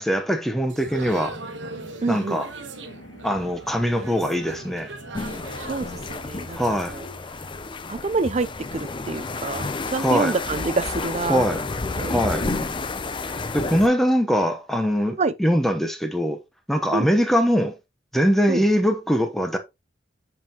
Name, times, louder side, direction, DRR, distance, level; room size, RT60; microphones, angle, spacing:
voice 1, 0.0-1.4 2.1-2.5 3.2-4.9 6.6-6.9 10.0-10.4 11.3-11.6 12.1-12.5 13.5-16.4 16.7-17.8 18.1-19.6, equal, ahead, 0.9 m, -22 dB
sound 1, 0.7-7.0, equal, 90° left, 1.8 m, -45 dB
sound 2, 0.7-7.6, right 3 dB, 75° right, 1.2 m, -40 dB
voice 2, 2.0-2.4 5.6-6.6 6.9-7.1 7.9-11.4 12.0-12.7 15.2-15.3 16.9-17.1 18.5-18.6, right 3 dB, 35° right, 0.5 m, -27 dB
sound 3, 5.1-13.9, left 3 dB, 25° left, 0.5 m, -31 dB
7.9 x 5.4 x 2.9 m
head